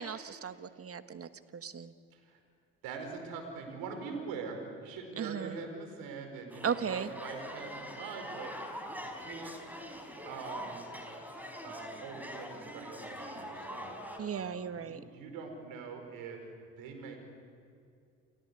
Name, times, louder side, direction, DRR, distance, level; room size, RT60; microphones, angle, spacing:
voice 1, 0.0-1.9 5.2-5.6 6.6-7.1 14.2-15.0, right 7 dB, 40° right, 11 dB, 1.4 m, -36 dB
voice 2, 2.8-9.6 10.2-10.9 11.6-13.9 14.3-16.4 16.8-17.2, right 5 dB, 70° right, 4 dB, 4.9 m, -43 dB
sound 1, 6.5-14.2, equal, 5° right, 5.0 m, -44 dB
29.0 x 16.5 x 8.3 m, 2.4 s
hypercardioid pair, 50°, 37 cm